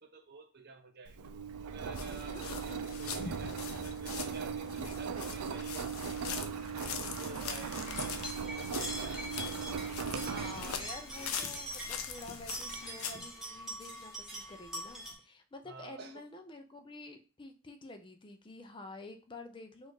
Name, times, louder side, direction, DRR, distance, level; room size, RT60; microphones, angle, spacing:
voice 1, 0.0-1.3 1.6-6.2 6.7-7.8 8.5-9.6 15.6-16.2, right 3 dB, 50° right, 5 dB, 0.7 m, -51 dB
Engine, 1.1-12.8, right 6 dB, 90° right, 0.4 m, -39 dB
sound 1, 1.9-13.2, left 7 dB, 75° left, 0.6 m, -43 dB
voice 2, 2.3-2.8 10.1-19.9, left 2 dB, 20° left, 7 dB, 0.5 m, -49 dB
sound 2, 7.9-15.1, equal, ahead, 1.4 m, -44 dB
4.2 x 2.5 x 4.7 m, 0.33 s
head